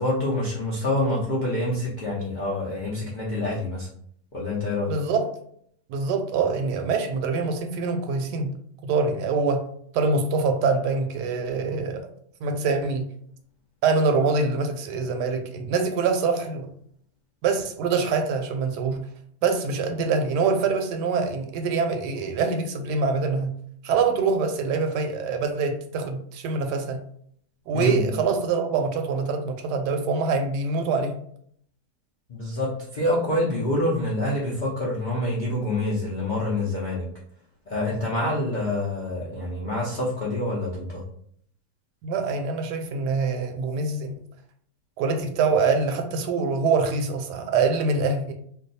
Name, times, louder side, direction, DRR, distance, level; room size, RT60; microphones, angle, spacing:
voice 1, 0.0-3.9 4.3-4.9 27.7-28.1 32.3-37.1 37.7-41.0, left 1 dB, 65° left, 0.4 m, -26 dB
voice 2, 4.9-5.3 5.9-8.6 8.8-9.7 9.9-12.1 12.4-13.1 13.8-16.7 17.4-19.1 19.4-23.6 23.8-27.0 27.7-31.2 42.0-44.1 45.0-48.3, right 4 dB, 80° right, 1.1 m, -24 dB
2.6 x 2.3 x 4.0 m
omnidirectional pair, 1.8 m